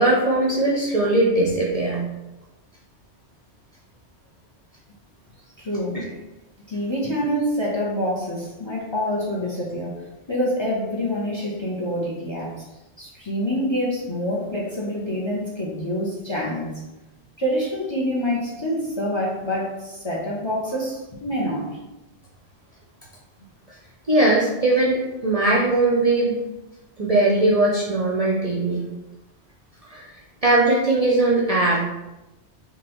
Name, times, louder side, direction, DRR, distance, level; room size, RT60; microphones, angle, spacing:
voice 1, 0.0-2.0 5.9-6.0 23.7-23.8 24.1-26.4 27.0-28.8 29.9-30.0 30.4-31.8, right 2 dB, 45° right, -4 dB, 0.5 m, -20 dB
voice 2, 5.6-6.0 6.7-9.9 10.3-12.5 13.0-16.7 17.4-21.7, equal, 30° left, -3 dB, 0.6 m, -26 dB
3.8 x 3.0 x 3.0 m, 1.0 s
omnidirectional pair, 1.2 m